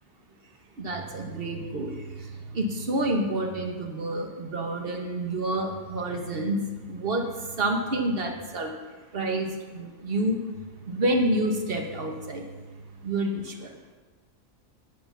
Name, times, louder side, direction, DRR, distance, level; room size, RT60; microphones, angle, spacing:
voice 1, 0.8-2.0 2.5-6.6 6.9-7.3 7.6-8.7 9.1-9.5 9.7-10.4 10.9-12.4 13.0-13.7, right 1 dB, 45° right, 3 dB, 1.4 m, -28 dB
9.7 x 9.1 x 5.7 m, 1.3 s
omnidirectional pair, 1.4 m